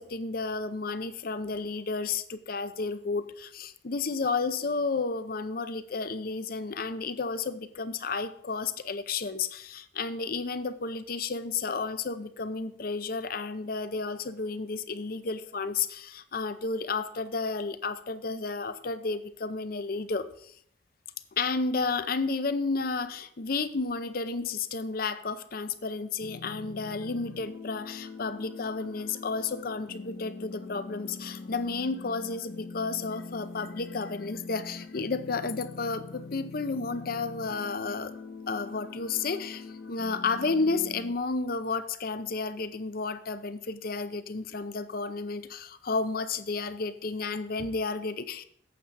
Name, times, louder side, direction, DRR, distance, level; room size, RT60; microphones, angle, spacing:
voice 1, 0.0-20.6 21.3-38.1 38.5-48.4, left 4 dB, 50° left, 12 dB, 0.6 m, -32 dB
sound 1, 26.2-41.1, left 3 dB, 65° left, 1.0 m, -43 dB
9.3 x 7.5 x 4.1 m, 0.65 s
head